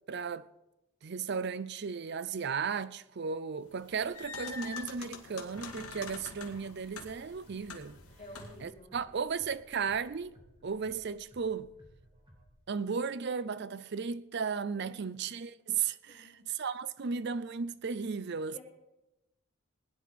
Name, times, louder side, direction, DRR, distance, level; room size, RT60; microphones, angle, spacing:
voice 1, 0.1-0.5 1.0-8.0 8.6-10.4 10.6-11.7 12.7-18.6, right 5 dB, 50° right, 0.5 m, -35 dB
sound 1, 3.7-8.7, left 4 dB, 85° left, 1.9 m, -45 dB
sound 2, 5.5-12.5, equal, 20° right, 2.3 m, -60 dB
voice 2, 8.2-8.9 14.8-15.1 16.1-16.4 18.4-18.6, left 1 dB, 30° left, 5.7 m, -51 dB
20.0 x 10.0 x 4.2 m
head